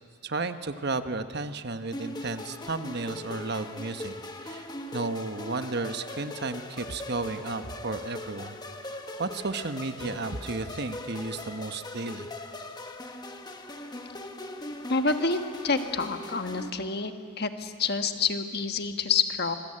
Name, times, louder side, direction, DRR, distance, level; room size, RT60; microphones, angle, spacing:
voice 1, 0.2-4.2 4.4-8.6 8.9-12.3, right 3 dB, 50° right, 9 dB, 1.1 m, -33 dB
sound 1, 1.9-16.7, left 1 dB, 20° left, 1.2 m, -40 dB
voice 2, 14.9-15.4 15.6-17.1 17.4-19.5, left 4 dB, 50° left, 7 dB, 1.4 m, -27 dB
25.5 x 21.5 x 8.8 m, 2.2 s
head